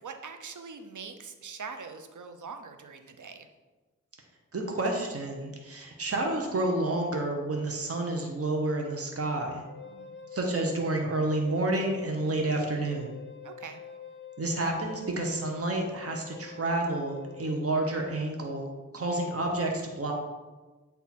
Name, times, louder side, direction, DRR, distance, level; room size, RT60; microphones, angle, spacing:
voice 1, 0.0-3.5 9.8-10.2 13.4-13.8 19.1-19.3, right 5 dB, 75° right, 7 dB, 0.6 m, -43 dB
voice 2, 4.5-9.6 10.3-13.1 14.4-20.1, right 2 dB, 50° right, 1 dB, 1.0 m, -30 dB
Wind instrument woodwind instrument, 9.7-17.5, left 6 dB, 40° left, 0.7 m, -46 dB
8.1 x 2.7 x 4.3 m, 1.2 s
cardioid pair, 45°, 30 cm